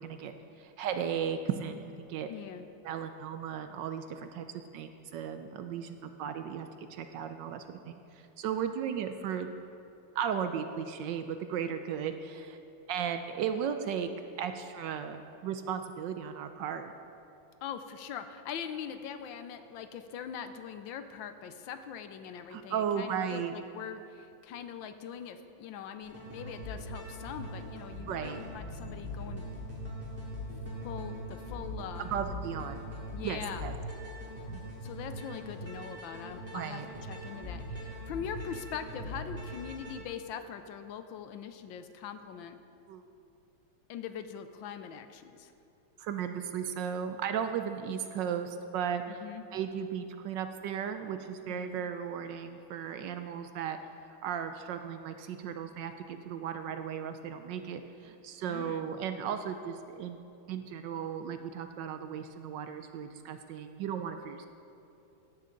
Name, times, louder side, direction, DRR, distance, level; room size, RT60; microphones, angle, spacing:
voice 1, 0.0-2.3 2.8-9.5 10.1-12.6 12.9-14.1 14.4-16.9 22.5-23.5 28.1-28.4 32.0-32.8 33.2-33.7 34.5-34.6 36.5-36.9 42.9-43.0 46.0-49.2 49.5-53.8 54.2-64.5, right 8 dB, 75° right, 8 dB, 1.1 m, -36 dB
voice 2, 2.3-2.7 17.6-29.5 30.8-32.1 33.1-33.7 34.8-42.6 43.9-45.5 49.1-49.4 51.5-51.8 58.4-58.9, left 8 dB, 75° left, 9 dB, 1.3 m, -42 dB
sound 1, 26.0-40.0, equal, 5° right, 3.3 m, -41 dB
16.0 x 10.5 x 3.9 m, 2.7 s
omnidirectional pair, 2.2 m